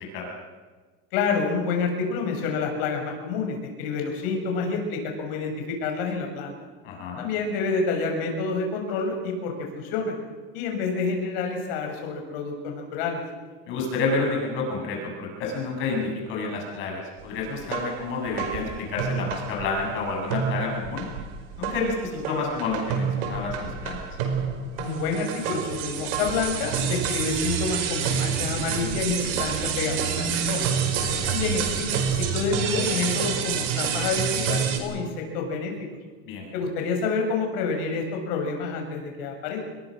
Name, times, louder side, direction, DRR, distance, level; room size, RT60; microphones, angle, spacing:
voice 1, 1.1-6.5 7.2-10.2 10.5-13.2 24.8-30.7 31.3-35.7 36.5-39.7, left 4 dB, 55° left, 3 dB, 7.2 m, -28 dB
voice 2, 6.8-7.2 13.7-21.1 21.6-24.0 31.0-31.3 36.3-36.4, left 3 dB, 35° left, 0 dB, 7.2 m, -29 dB
sound 1, 17.6-20.0 20.3-34.8, right 7 dB, 60° right, 5.0 m, -28 dB
28.0 x 21.5 x 6.5 m, 1.4 s
supercardioid pair, 180°, 32 cm